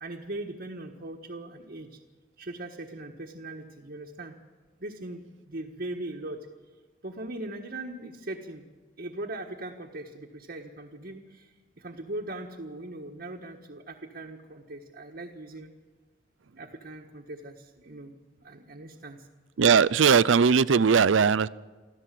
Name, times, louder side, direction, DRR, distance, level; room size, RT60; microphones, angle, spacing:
voice 1, 0.0-2.0 2.4-4.3 4.8-6.5 7.0-8.6 9.0-15.7 16.5-19.3, right 2 dB, 55° right, 1.5 m, -40 dB
voice 2, 19.6-21.5, right 6 dB, 85° right, 0.5 m, -19 dB
25.5 x 14.5 x 7.6 m
head